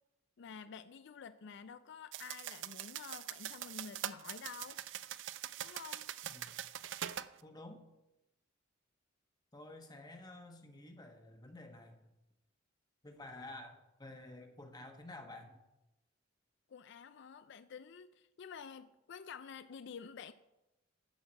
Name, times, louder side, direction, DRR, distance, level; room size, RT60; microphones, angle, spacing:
voice 1, 0.4-4.8 5.6-6.1 16.7-20.3, left 6 dB, 60° left, 0.4 m, -50 dB
sound 1, 2.1-7.3, right 11 dB, 65° right, 0.4 m, -43 dB
voice 2, 6.2-6.6 7.4-7.8 9.5-12.1 13.0-15.6, left 2 dB, 20° left, 1.2 m, -51 dB
11.5 x 4.6 x 7.5 m
head